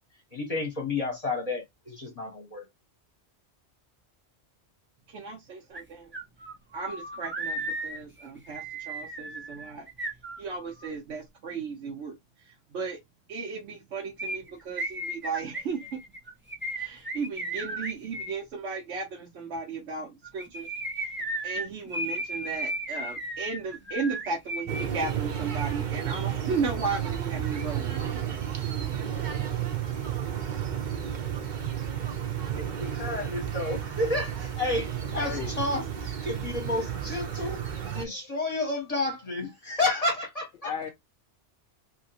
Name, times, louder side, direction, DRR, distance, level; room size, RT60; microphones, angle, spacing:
voice 1, 0.3-2.6 32.6-35.9 36.2-37.6 37.9-40.7, left 2 dB, 35° left, 1.0 m, -31 dB
voice 2, 5.1-6.1 6.7-9.9 10.4-13.0 13.3-16.0 16.7-20.7 21.0-21.1 21.4-29.1, right 4 dB, 90° right, 1.1 m, -35 dB
sound 1, 5.7-5.8 6.1-10.9 14.2-18.4 20.2-24.9 25.1-25.2, right 1 dB, 15° right, 0.4 m, -35 dB
sound 2, 24.7-38.0, right 9 dB, 50° right, 0.8 m, -32 dB
voice 3, 35.1-35.5 38.1-38.2 40.6-40.9, left 7 dB, 65° left, 0.7 m, -35 dB
2.8 x 2.8 x 2.7 m
omnidirectional pair, 1.1 m